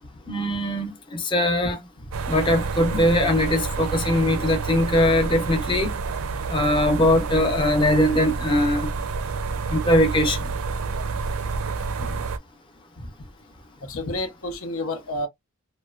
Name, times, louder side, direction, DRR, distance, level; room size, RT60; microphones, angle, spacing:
voice 1, 0.3-1.8 2.3-5.9 6.5-8.9 9.7-10.5, left 1 dB, 25° left, 0.7 m, -21 dB
sound 1, 2.1-12.4, right 4 dB, 75° right, 0.4 m, -29 dB
voice 2, 13.8-15.3, left 1 dB, 80° left, 0.8 m, -30 dB
2.9 x 2.1 x 2.3 m
head